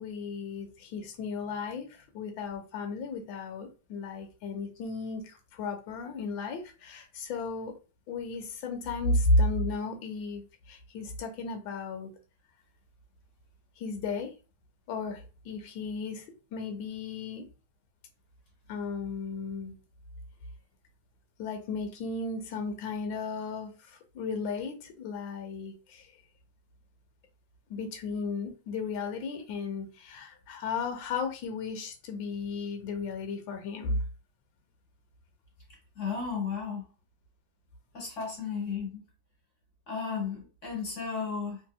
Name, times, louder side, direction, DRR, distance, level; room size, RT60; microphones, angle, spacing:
voice 1, 0.0-7.8 8.1-12.1 13.8-14.3 14.9-16.2 16.5-17.5 18.7-19.7 21.4-26.1 27.7-34.0, left 3 dB, 85° left, 1.4 m, -34 dB
voice 2, 35.9-36.9 37.9-39.0 39.9-41.6, left 5 dB, 45° left, 1.3 m, -34 dB
3.2 x 2.8 x 2.3 m
omnidirectional pair, 2.0 m